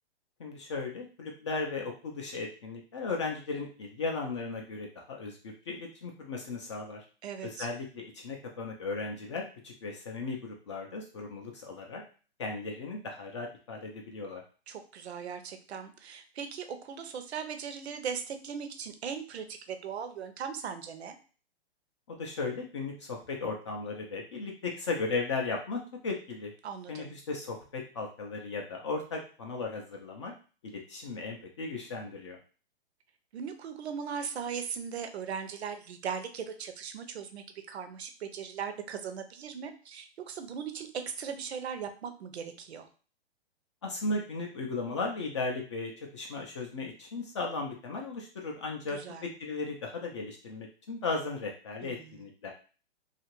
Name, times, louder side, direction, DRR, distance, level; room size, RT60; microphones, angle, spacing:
voice 1, 0.4-7.0 7.4-12.0 12.4-14.4 22.1-26.5 26.9-30.3 30.6-32.4 43.8-52.5, left 3 dB, 30° left, 1 dB, 0.4 m, -36 dB
voice 2, 7.2-7.7 14.7-21.2 26.6-27.1 33.3-42.9 48.9-49.3 51.8-52.2, right 7 dB, 80° right, 7 dB, 0.6 m, -39 dB
2.8 x 2.4 x 2.9 m, 0.38 s
hypercardioid pair, 145°, 32 cm